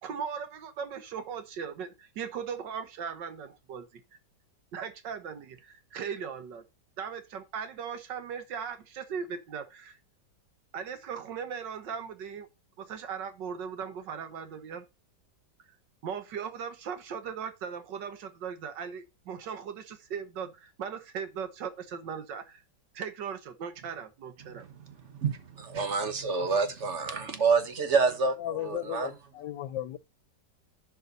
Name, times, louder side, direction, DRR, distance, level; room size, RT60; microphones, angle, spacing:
voice 1, 0.0-3.9 4.7-6.6 7.0-10.0 10.7-12.5 12.8-14.9 16.0-22.6 22.9-24.7, right 7 dB, 75° right, 1.8 m, -38 dB
voice 2, 24.9-29.1, right 4 dB, 45° right, 1.3 m, -28 dB
voice 3, 28.4-30.0, left 13 dB, 85° left, 1.4 m, -35 dB
11.0 x 5.4 x 4.1 m
omnidirectional pair, 1.9 m